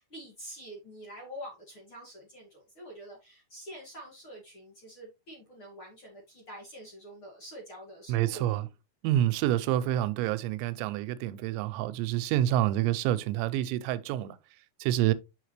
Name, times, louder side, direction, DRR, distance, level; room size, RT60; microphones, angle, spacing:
voice 1, 0.0-8.6, equal, 40° left, 2.1 m, -46 dB
voice 2, 8.1-8.7 9.0-14.4 14.8-15.1, right 13 dB, 85° right, 2.9 m, -27 dB
7.7 x 5.8 x 3.2 m
omnidirectional pair, 5.2 m